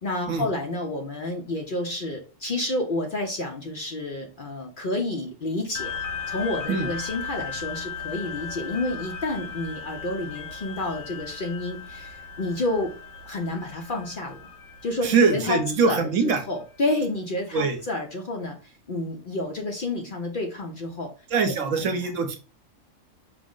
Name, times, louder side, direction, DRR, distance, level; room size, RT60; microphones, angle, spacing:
voice 1, 0.0-5.9 6.3-12.9 13.3-14.4 14.8-15.6 15.8-16.1 16.5-18.6 18.9-21.1 21.4-22.0, left 2 dB, 50° left, 2 dB, 0.7 m, -30 dB
sound 1, 5.7-16.6, left 6 dB, 85° left, 1.2 m, -37 dB
voice 2, 15.0-16.4 17.5-17.8 21.3-22.4, right 4 dB, 70° right, 6 dB, 1.1 m, -23 dB
5.0 x 2.0 x 3.7 m, 0.34 s
omnidirectional pair, 1.4 m